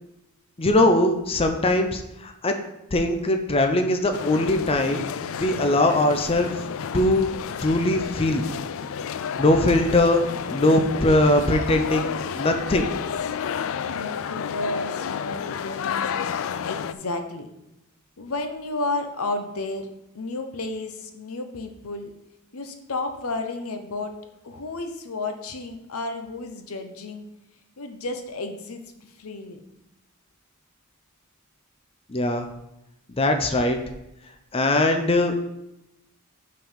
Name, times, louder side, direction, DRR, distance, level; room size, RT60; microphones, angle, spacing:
voice 1, 0.6-2.5 2.9-5.0 5.3-6.5 6.9-7.3 7.6-8.4 9.4-10.2 10.5-12.9 32.1-32.5 33.2-33.8 34.5-35.3, left 1 dB, 25° left, 5 dB, 0.6 m, -21 dB
sound 1, 4.1-16.9, left 7 dB, 65° left, 0.4 m, -31 dB
voice 2, 13.8-16.1 16.6-17.5 18.2-19.9 20.1-22.1 22.5-24.1 24.4-27.2 27.8-29.6, left 2 dB, 85° left, 6 dB, 0.9 m, -32 dB
5.8 x 5.4 x 5.6 m, 0.88 s
head